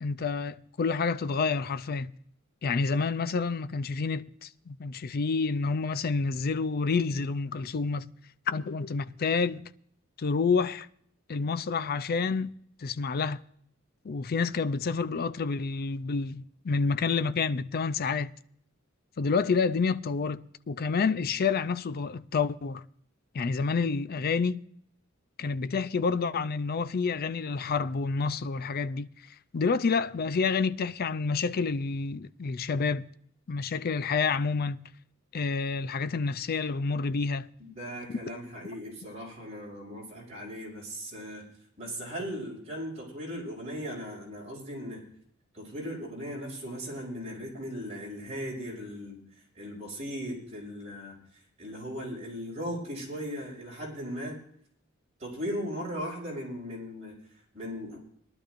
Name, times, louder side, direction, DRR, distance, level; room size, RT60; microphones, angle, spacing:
voice 1, 0.0-2.1 2.6-8.1 8.5-9.7 10.2-10.9 11.3-12.5 12.8-13.4 14.0-18.3 19.2-22.8 23.3-24.6 25.4-29.1 29.5-33.1 33.5-34.9 35.3-37.5 38.1-38.2, left 4 dB, 50° left, 0.5 m, -28 dB
voice 2, 37.6-41.5 41.8-45.0 45.5-49.2 49.6-51.2 51.6-54.4 55.2-57.2 57.5-58.0, equal, 35° right, 5.4 m, -38 dB
22.0 x 12.0 x 2.6 m
head